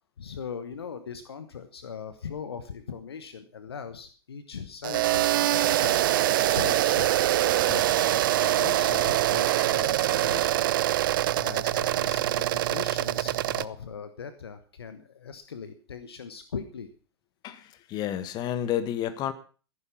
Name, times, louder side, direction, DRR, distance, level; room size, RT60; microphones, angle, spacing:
voice 1, 0.2-6.0 6.5-7.1 7.6-10.7 11.3-16.9, left 6 dB, 70° left, 10 dB, 1.3 m, -39 dB
sound 1, 4.8-13.6, right 13 dB, 50° right, 0.6 m, -24 dB
voice 2, 17.4-19.3, left 10 dB, 30° left, 12 dB, 1.6 m, -30 dB
14.5 x 11.5 x 5.8 m, 0.38 s
figure-of-eight pair, 100°, 14 cm